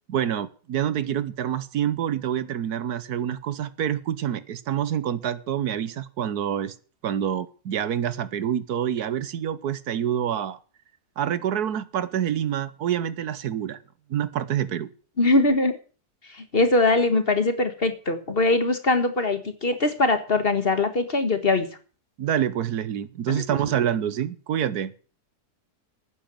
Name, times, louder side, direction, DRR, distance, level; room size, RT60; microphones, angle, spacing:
voice 1, 0.1-6.7 7.0-10.6 11.2-13.8 14.1-14.9 22.2-24.9, right 10 dB, 75° right, 1.4 m, -27 dB
voice 2, 15.2-15.7 16.4-21.7 23.3-23.4, left 2 dB, 35° left, 1.6 m, -22 dB
12.0 x 9.5 x 7.6 m
omnidirectional pair, 1.7 m